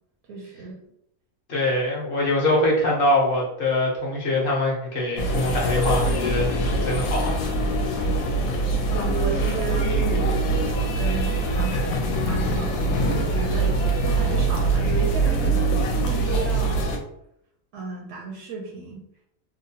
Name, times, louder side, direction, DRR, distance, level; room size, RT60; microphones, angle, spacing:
voice 1, 0.3-0.8 8.9-16.8 17.7-19.0, right 3 dB, 70° right, -1 dB, 0.8 m, -34 dB
voice 2, 1.5-7.4, left 1 dB, 50° left, -3 dB, 0.8 m, -23 dB
sound 1, 5.2-17.0, right 2 dB, 75° left, 1.0 m, -23 dB
2.8 x 2.0 x 2.7 m, 0.76 s
omnidirectional pair, 1.5 m